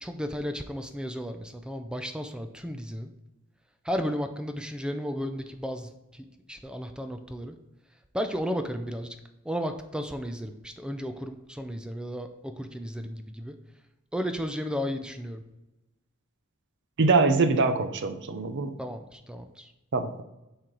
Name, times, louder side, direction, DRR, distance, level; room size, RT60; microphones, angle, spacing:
voice 1, 0.0-3.1 3.8-7.6 8.1-9.2 9.4-13.6 14.1-15.4 18.8-19.7, equal, 5° right, 7 dB, 0.4 m, -34 dB
voice 2, 17.0-18.7 19.9-20.2, right 3 dB, 60° right, 9 dB, 0.6 m, -23 dB
7.7 x 4.4 x 3.9 m, 0.96 s
head